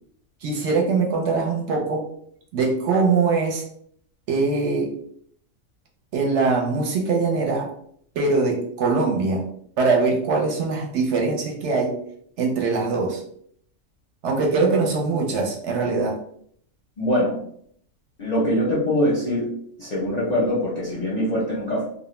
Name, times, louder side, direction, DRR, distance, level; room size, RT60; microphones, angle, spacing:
voice 1, 0.4-2.1 2.5-3.6 4.3-4.9 6.1-7.7 8.2-9.4 9.8-12.0 12.4-13.2 14.2-16.2, right 4 dB, 65° right, 0 dB, 0.8 m, -22 dB
voice 2, 17.0-17.4 18.2-19.5 19.8-21.9, equal, 50° left, -5 dB, 0.5 m, -23 dB
2.2 x 2.1 x 3.0 m, 0.64 s
omnidirectional pair, 1.4 m